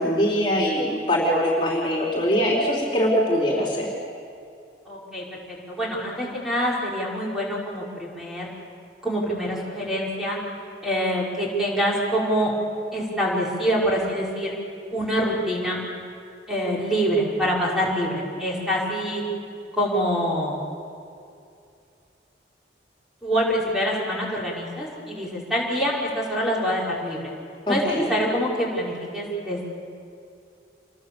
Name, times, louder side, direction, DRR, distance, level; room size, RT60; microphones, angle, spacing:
voice 1, 0.0-3.9 27.7-28.1, equal, 30° left, -3 dB, 4.2 m, -22 dB
voice 2, 4.9-8.5 9.0-10.4 10.8-12.5 12.9-14.5 14.9-15.8 16.5-19.2 19.8-20.6 23.2-27.3 27.7-29.7, equal, ahead, -5 dB, 5.4 m, -25 dB
28.0 x 23.0 x 7.2 m, 2.5 s
head